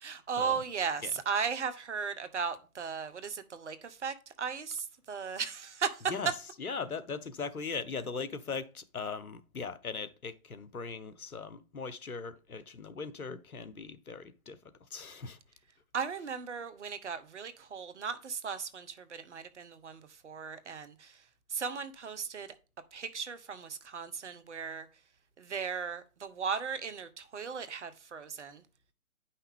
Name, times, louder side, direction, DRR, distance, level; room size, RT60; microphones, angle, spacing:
voice 1, 0.0-6.0 15.9-21.1 21.5-22.5 22.9-24.9 25.4-28.6, right 6 dB, 55° right, 1.0 m, -36 dB
voice 2, 6.0-14.6 14.9-15.4 16.1-16.3, left 5 dB, 80° left, 1.0 m, -39 dB
9.6 x 5.6 x 3.5 m
figure-of-eight pair, 135°, 43 cm